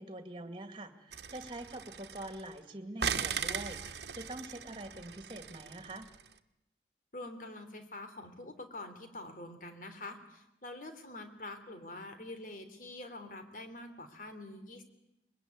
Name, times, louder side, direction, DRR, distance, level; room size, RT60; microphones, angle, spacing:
voice 1, 0.0-6.1, right 1 dB, 30° right, 8 dB, 2.2 m, -45 dB
sound 1, 1.1-2.6 3.0-6.3, right 7 dB, 75° right, 1.3 m, -39 dB
voice 2, 7.1-14.8, left 2 dB, 50° left, 7 dB, 3.4 m, -46 dB
23.5 x 22.0 x 9.6 m, 0.88 s
head